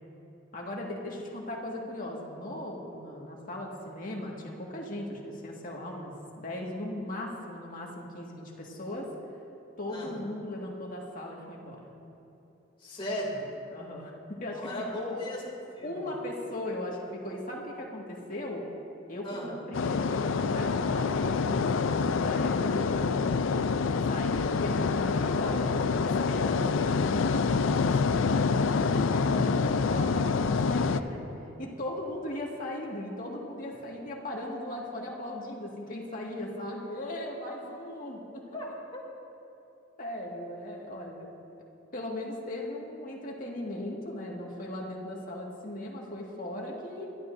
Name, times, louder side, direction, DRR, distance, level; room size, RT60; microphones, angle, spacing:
voice 1, 0.5-9.1 9.8-11.8 13.7-15.2 15.8-18.6 19.1-23.7 24.1-31.2 31.6-38.4 40.0-41.3 41.9-47.1, left 1 dB, 45° left, -2 dB, 1.9 m, -38 dB
voice 2, 12.8-13.4 14.5-15.4 15.7-15.9 19.2-19.5 38.5-39.0, equal, 25° left, -3 dB, 2.7 m, -37 dB
sound 1, 19.7-31.0, left 4 dB, 75° left, 0.4 m, -26 dB
22.5 x 12.5 x 2.7 m, 2.8 s
head